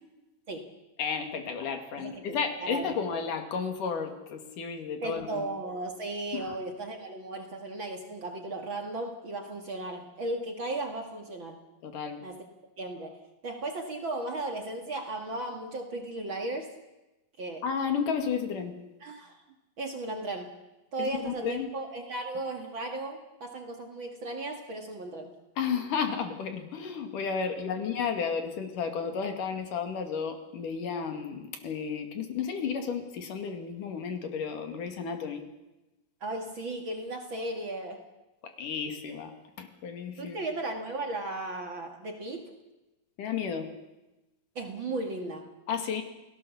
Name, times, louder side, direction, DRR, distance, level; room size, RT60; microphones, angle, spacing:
voice 1, 1.0-5.5 6.3-6.6 11.8-12.2 17.6-18.8 21.0-21.7 25.6-35.4 38.4-40.4 43.2-43.7 45.7-46.0, left 6 dB, 70° left, 6 dB, 3.7 m, -33 dB
voice 2, 2.0-3.3 5.0-11.6 12.2-12.4 12.8-13.2 13.4-16.7 17.4-17.6 19.0-19.4 19.8-20.5 20.9-25.3 36.2-38.0 40.2-42.5 44.6-45.5, right 2 dB, 40° right, 4 dB, 2.3 m, -36 dB
29.0 x 18.0 x 7.1 m, 1.0 s
omnidirectional pair, 3.9 m